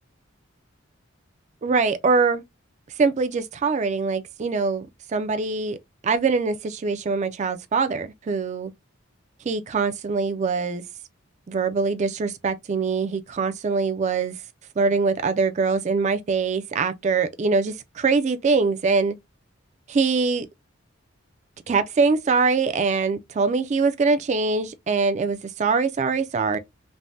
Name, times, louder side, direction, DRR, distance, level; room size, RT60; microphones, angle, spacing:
voice 1, 1.6-2.4 3.0-4.9 5.1-5.8 6.0-8.7 9.5-10.8 11.5-14.3 14.8-19.2 19.9-20.5 21.7-26.6, right 4 dB, 35° right, 0.3 m, -23 dB
3.3 x 2.1 x 2.5 m
head